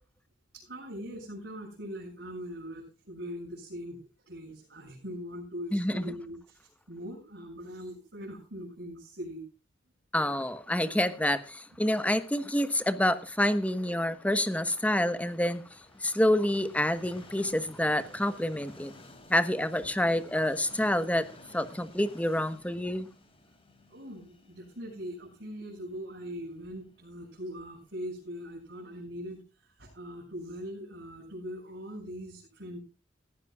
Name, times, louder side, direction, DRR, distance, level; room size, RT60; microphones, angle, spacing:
voice 1, 0.5-9.4 23.9-32.8, equal, 65° right, 7.3 m, -41 dB
voice 2, 5.7-6.0 10.1-15.6 16.0-18.9 19.3-23.1, left 1 dB, 10° left, 1.2 m, -28 dB
Train, 13.2-29.0, left 1 dB, 30° left, 3.5 m, -55 dB
19.0 x 15.0 x 2.4 m
head